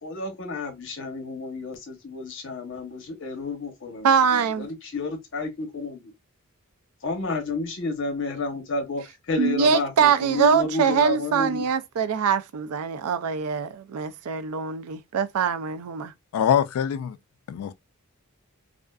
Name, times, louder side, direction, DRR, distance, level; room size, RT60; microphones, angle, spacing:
voice 1, 0.0-6.1 7.0-11.6, left 3 dB, 60° left, 0.8 m, -31 dB
voice 2, 4.0-4.7 9.4-16.1, right 6 dB, 85° right, 0.4 m, -23 dB
voice 3, 16.3-17.2 17.5-17.7, left 8 dB, 75° left, 0.3 m, -23 dB
2.4 x 2.4 x 2.3 m
head